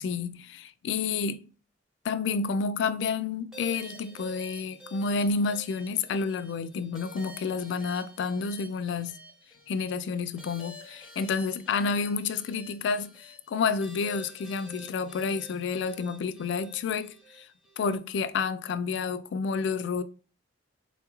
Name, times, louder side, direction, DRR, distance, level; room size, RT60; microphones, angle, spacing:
voice 1, 0.0-1.5 2.0-9.2 9.7-17.5 17.8-20.0, left 5 dB, 65° left, 0.3 m, -30 dB
sound 1, 3.5-18.0, right 1 dB, 5° right, 0.8 m, -49 dB
3.8 x 2.3 x 2.9 m
head